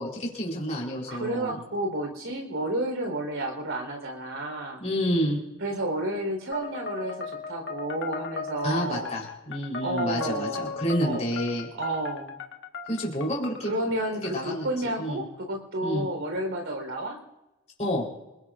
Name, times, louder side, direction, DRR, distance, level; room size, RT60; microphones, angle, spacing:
voice 1, 0.0-1.6 4.8-5.4 8.6-11.7 12.9-13.8 14.3-15.2 15.8-16.1 17.8-18.1, equal, 35° left, -3 dB, 4.2 m, -29 dB
voice 2, 1.1-4.8 5.6-9.1 9.8-11.2 11.8-12.4 13.6-17.2, right 1 dB, 70° right, 3 dB, 4.3 m, -31 dB
sound 1, 6.5-13.7, left 5 dB, 60° left, 1.7 m, -38 dB
27.5 x 19.0 x 2.6 m, 1.0 s
head